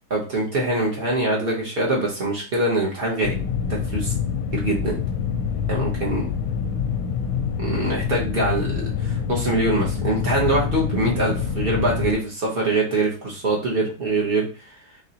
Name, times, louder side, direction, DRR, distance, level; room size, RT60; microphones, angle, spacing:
voice 1, 0.1-3.4 3.7-4.1 4.5-5.0 5.7-6.3 7.6-14.4, right 2 dB, 75° right, -3 dB, 0.5 m, -23 dB
sound 1, 3.2-12.2, left 7 dB, 75° left, 1.1 m, -26 dB
4.7 x 3.1 x 2.8 m, 0.37 s
omnidirectional pair, 2.4 m